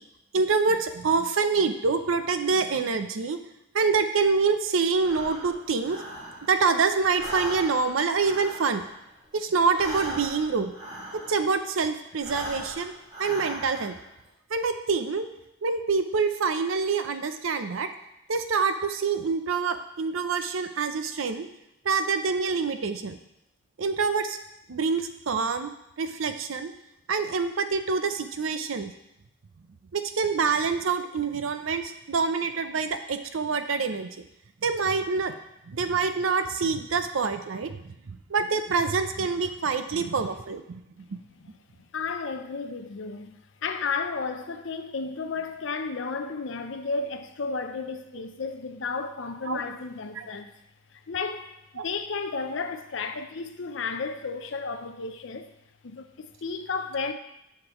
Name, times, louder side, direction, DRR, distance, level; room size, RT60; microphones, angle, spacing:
voice 1, 0.3-3.4 3.7-6.0 6.5-8.8 9.3-10.7 11.3-12.9 13.2-13.9 14.5-15.3 15.6-17.9 18.3-21.5 21.8-23.2 23.8-24.4 24.7-25.7 26.0-26.7 27.1-28.9 29.9-34.1 34.6-35.3 35.7-37.7 38.3-40.6 49.5-49.6 50.2-50.3 51.8-51.9, right 4 dB, 85° right, 0.6 m, -26 dB
Breathing, 5.0-6.7 7.0-11.6 12.1-14.0, right 1 dB, 30° right, 2.4 m, -39 dB
voice 2, 41.8-43.3 43.6-50.5 50.9-55.5 55.8-57.1, left 4 dB, 65° left, 0.5 m, -33 dB
7.6 x 5.9 x 3.0 m
head